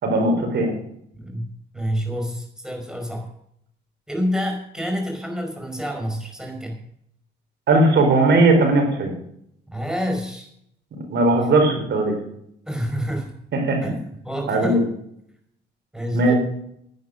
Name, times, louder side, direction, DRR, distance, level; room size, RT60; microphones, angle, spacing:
voice 1, 0.0-0.7 7.7-9.1 11.1-12.2 13.5-13.8 14.5-14.8 16.1-16.3, right 2 dB, 65° right, 3 dB, 4.8 m, -18 dB
voice 2, 1.1-3.3 4.1-6.8 9.7-10.5 12.6-13.3 13.8-14.8 15.9-16.3, equal, 5° right, 2 dB, 5.1 m, -28 dB
11.0 x 9.5 x 6.6 m, 0.72 s
cardioid pair, 90°, 20 cm